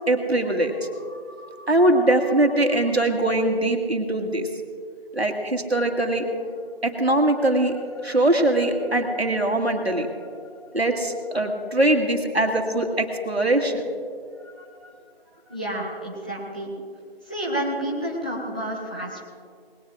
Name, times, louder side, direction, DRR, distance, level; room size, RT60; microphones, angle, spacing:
voice 1, 0.1-4.5 5.1-6.3 6.8-10.4 10.7-13.8, right 1 dB, 80° right, 3 dB, 2.1 m, -22 dB
voice 2, 15.5-16.7 17.3-19.2, right 1 dB, 10° left, -7 dB, 0.7 m, -29 dB
20.0 x 18.0 x 2.5 m, 2.2 s
figure-of-eight pair, 155°, 31 cm